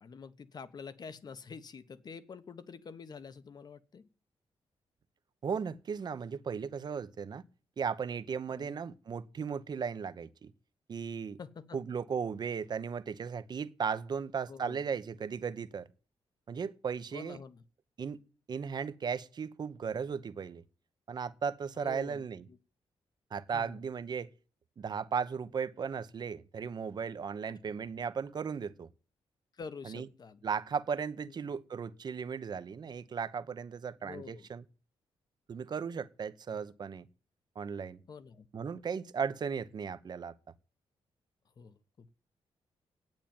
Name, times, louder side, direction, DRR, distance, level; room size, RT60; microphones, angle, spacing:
voice 1, 0.0-4.1 8.5-8.8 11.4-11.8 14.5-14.8 17.1-17.6 21.8-22.6 23.5-23.8 27.7-27.8 29.6-30.4 34.0-34.5 38.1-38.5 41.6-42.2, left 5 dB, 40° left, 1.2 m, -47 dB
voice 2, 5.4-7.4 7.8-10.5 10.9-11.4 11.7-15.9 16.5-17.4 18.0-18.2 18.5-20.6 21.1-22.4 23.3-24.3 24.8-28.9 29.8-30.1 30.4-34.6 35.5-37.1 37.6-38.0 38.5-40.3, right 6 dB, 45° right, 0.9 m, -36 dB
10.5 x 9.1 x 8.9 m
wide cardioid pair, 135°, 10 cm